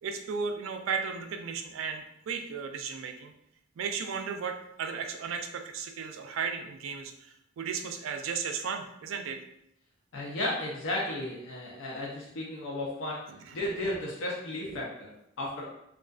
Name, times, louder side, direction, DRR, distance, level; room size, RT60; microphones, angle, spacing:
voice 1, 0.0-3.3 3.8-9.4 13.3-13.6, right 6 dB, 85° right, 5 dB, 0.3 m, -35 dB
voice 2, 10.1-13.2 13.5-15.7, left 1 dB, 70° left, -4 dB, 0.5 m, -34 dB
2.4 x 2.3 x 2.2 m, 0.77 s
head